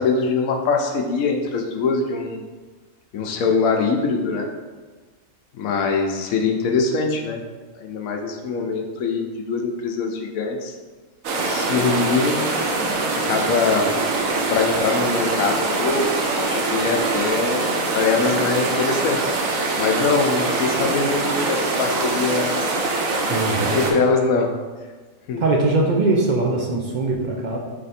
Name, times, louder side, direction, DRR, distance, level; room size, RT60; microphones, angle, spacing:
voice 1, 0.0-2.4 3.1-4.5 5.5-7.4 7.8-10.7 11.4-12.5 13.1-14.0 14.5-17.7 17.9-22.7 23.2-24.5 25.3-25.4, left 4 dB, 85° left, 3 dB, 1.1 m, -23 dB
sound 1, 11.2-23.9, right 3 dB, 80° right, 1.1 m, -23 dB
voice 2, 23.3-23.8 25.4-27.6, right 2 dB, 60° right, -1 dB, 0.4 m, -21 dB
3.5 x 3.3 x 4.1 m, 1.3 s
omnidirectional pair, 1.4 m